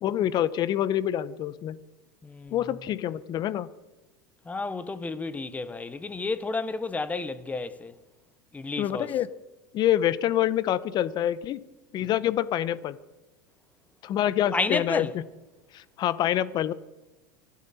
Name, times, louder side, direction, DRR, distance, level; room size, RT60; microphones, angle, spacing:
voice 1, 0.0-1.8 2.5-3.7 8.8-9.3 9.7-11.6 11.9-13.0 14.0-15.2 15.7-16.7, left 11 dB, 40° left, 0.9 m, -26 dB
voice 2, 2.2-2.6 4.5-7.9 8.5-9.1 14.5-15.1, left 3 dB, 15° left, 1.1 m, -31 dB
24.0 x 11.5 x 4.3 m
supercardioid pair, 110°, 11 cm